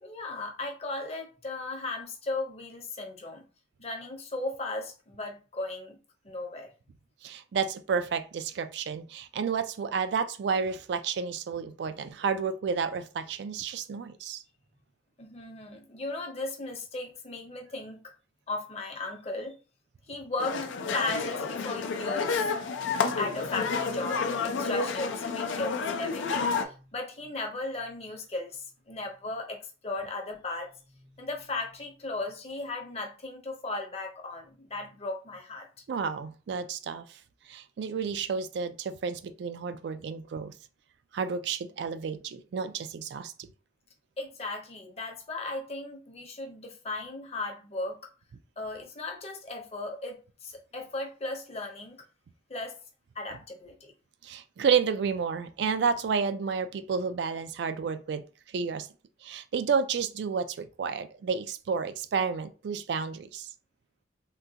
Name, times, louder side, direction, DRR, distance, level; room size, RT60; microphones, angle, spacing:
voice 1, 0.0-3.4 3.8-6.0 6.2-6.7 15.2-18.0 18.5-19.5 20.1-22.5 23.0-30.7 31.2-35.7 44.2-48.1 48.6-52.0 52.5-52.8 53.1-53.9, left 2 dB, 35° left, 0.7 m, -36 dB
voice 2, 7.2-14.4 35.9-37.2 37.5-40.5 41.1-43.3 54.2-58.3 58.5-58.9 59.2-63.5, right 6 dB, 65° right, 0.3 m, -31 dB
sound 1, 20.4-26.6, left 4 dB, 90° left, 0.4 m, -30 dB
3.7 x 2.2 x 2.7 m
head